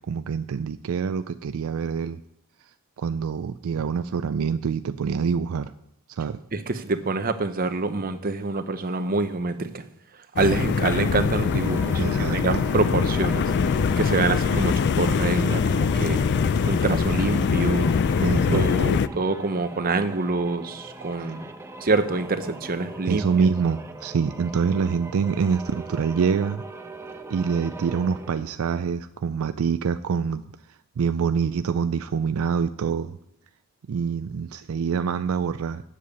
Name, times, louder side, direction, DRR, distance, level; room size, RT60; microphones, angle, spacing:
voice 1, 0.1-2.2 3.0-5.7 6.1-6.4 11.9-12.4 18.2-18.6 21.2-21.3 23.0-26.6 27.3-30.4 30.7-33.2 33.9-35.8, right 6 dB, 70° right, 11 dB, 0.4 m, -25 dB
voice 2, 6.5-9.8 10.4-12.0 12.3-13.5 14.0-16.3 16.6-17.9 18.5-21.4 21.8-23.2, right 3 dB, 45° right, 9 dB, 0.8 m, -26 dB
sound 1, 10.4-19.1, left 6 dB, 50° left, 0.4 m, -23 dB
sound 2, 11.1-28.6, right 2 dB, 10° right, 0.8 m, -40 dB
8.3 x 7.6 x 7.0 m, 0.73 s
head